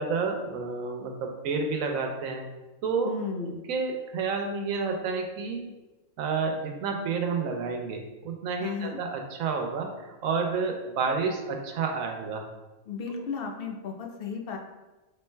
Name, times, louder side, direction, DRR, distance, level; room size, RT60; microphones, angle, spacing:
voice 1, 0.0-2.5 2.8-3.1 3.4-5.7 6.2-12.4, right 4 dB, 90° right, 3 dB, 1.0 m, -30 dB
voice 2, 3.0-3.6 8.6-9.0 12.9-14.6, left 5 dB, 65° left, 2 dB, 0.6 m, -34 dB
4.2 x 3.6 x 2.2 m, 1.1 s
omnidirectional pair, 1.4 m